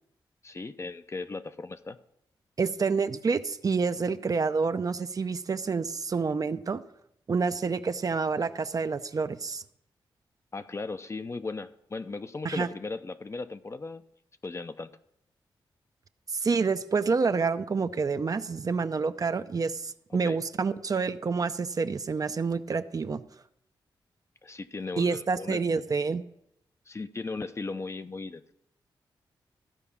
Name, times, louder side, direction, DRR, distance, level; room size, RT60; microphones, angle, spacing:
voice 1, 0.4-2.0 10.5-14.0 14.4-14.9 20.2-20.4 24.4-25.6 26.9-28.4, left 3 dB, 35° left, 10 dB, 0.6 m, -37 dB
voice 2, 2.6-6.8 7.3-9.6 12.4-12.7 16.3-23.2 25.0-26.2, right 4 dB, 45° right, 10 dB, 0.5 m, -28 dB
13.5 x 4.9 x 7.1 m, 0.77 s
cardioid pair, 65°, 9 cm